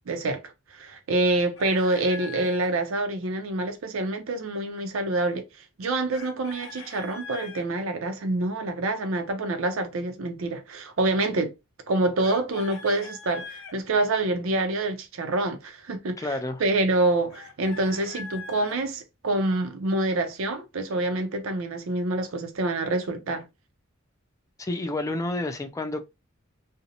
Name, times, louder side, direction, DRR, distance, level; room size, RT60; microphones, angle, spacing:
voice 1, 0.0-5.4 5.8-11.5 11.9-23.5, right 2 dB, 75° right, 0.5 m, -26 dB
Chicken rooster, 1.2-2.7 6.1-7.7 12.2-13.7 17.3-18.8, left 4 dB, 65° left, 0.7 m, -42 dB
voice 2, 16.2-16.6 24.6-26.0, left 2 dB, 15° left, 0.4 m, -29 dB
2.5 x 2.0 x 2.8 m
head